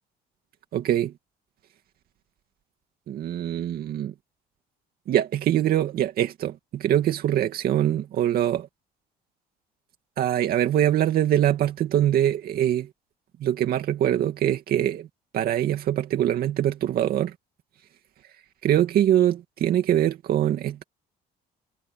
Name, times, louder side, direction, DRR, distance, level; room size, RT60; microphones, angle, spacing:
voice 1, 0.7-1.1 3.1-4.1 5.1-8.7 10.2-12.9 13.4-15.1 15.3-17.3 18.6-20.8, right 11 dB, 65° right, 2.3 m, -23 dB
cardioid pair, 110°, 17 cm